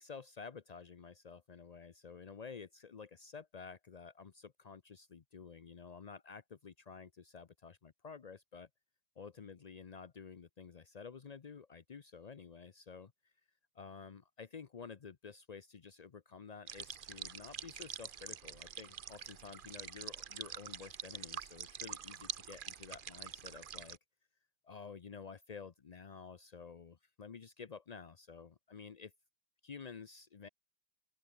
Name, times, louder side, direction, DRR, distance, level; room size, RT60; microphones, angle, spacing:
voice 1, 0.0-8.7 9.2-13.1 13.7-24.0 24.6-29.1 29.6-30.5, left 5 dB, 75° left, 0.3 m, -51 dB
sound 1, 16.7-24.0, right 8 dB, 60° right, 0.5 m, -46 dB
open air
omnidirectional pair, 1.8 m